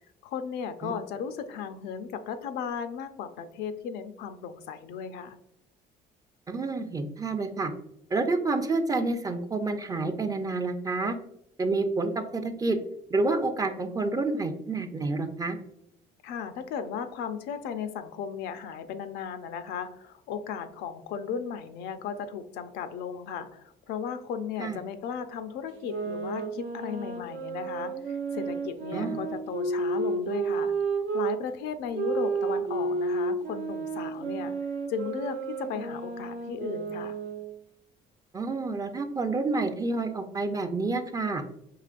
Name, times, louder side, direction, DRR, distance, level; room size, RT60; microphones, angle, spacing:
voice 1, 0.2-5.4 16.2-30.7 31.1-34.5 34.9-37.2, left 7 dB, 85° left, 9 dB, 0.5 m, -36 dB
voice 2, 6.5-7.7 8.1-11.1 11.6-12.8 13.1-15.6 24.6-24.8 28.9-29.2 38.3-41.4, right 3 dB, 20° right, 7 dB, 0.5 m, -29 dB
sound 1, 25.7-31.4 31.9-37.5, right 4 dB, 80° right, 0.8 m, -31 dB
4.8 x 2.9 x 2.4 m, 0.74 s
cardioid pair, 110°, 17 cm